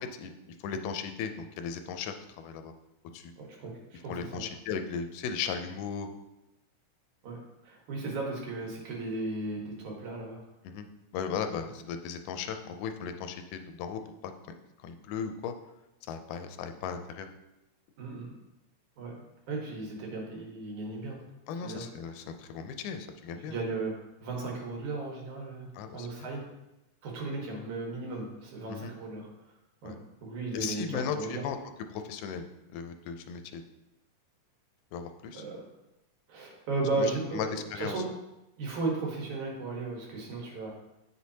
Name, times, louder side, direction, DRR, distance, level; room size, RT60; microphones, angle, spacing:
voice 1, 0.1-2.7 3.1-3.3 4.1-6.1 10.6-10.9 11.1-14.3 14.8-15.5 16.1-17.3 21.5-23.6 25.7-26.3 28.7-28.9 29.8-30.0 30.5-31.6 31.9-32.5 32.7-33.6 34.9-35.5 37.0-37.9, left 6 dB, 85° left, 7 dB, 2.2 m, -36 dB
voice 2, 3.4-4.5 7.2-10.4 18.0-18.3 19.0-21.2 21.6-21.8 23.5-23.9 24.2-26.4 27.0-29.3 29.8-30.0 30.2-31.4 35.3-35.7 36.3-38.1 38.6-40.7, right 3 dB, 70° right, -1 dB, 2.7 m, -35 dB
8.4 x 6.2 x 2.8 m, 0.93 s
omnidirectional pair, 3.7 m